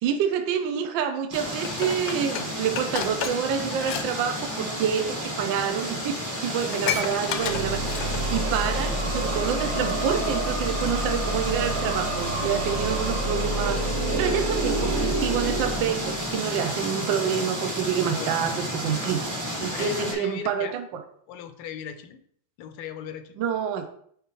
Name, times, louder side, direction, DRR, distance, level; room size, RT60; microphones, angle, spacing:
voice 1, 0.0-13.8 14.1-19.3 19.6-21.0 23.4-23.9, right 8 dB, 75° right, 6 dB, 1.2 m, -28 dB
sound 1, 1.3-20.1, equal, 10° right, 1.0 m, -32 dB
Dishes pots and pans, 1.6-4.1 4.4-4.6 5.4-5.5 5.9-6.0 6.2-8.4 8.8-8.9, left 8 dB, 70° left, 1.1 m, -32 dB
sound 2, 7.3-16.4, right 2 dB, 90° right, 0.5 m, -28 dB
voice 2, 18.0-18.5 19.7-20.8 21.3-22.2 22.6-23.4, left 9 dB, 90° left, 9 dB, 1.6 m, -37 dB
9.9 x 3.6 x 3.0 m, 0.64 s
omnidirectional pair, 2.3 m